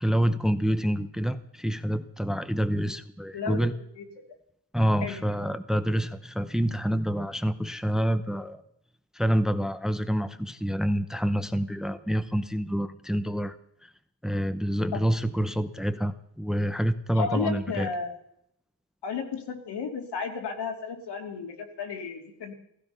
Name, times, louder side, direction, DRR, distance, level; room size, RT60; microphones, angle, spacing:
voice 1, 0.0-3.7 4.7-8.6 9.1-13.5 13.8-13.9 14.2-17.9, equal, ahead, 12 dB, 0.7 m, -27 dB
voice 2, 17.1-18.1 19.0-22.5, left 5 dB, 70° left, 3 dB, 2.8 m, -33 dB
16.0 x 16.0 x 5.6 m, 0.72 s
cardioid pair, 140°, 42 cm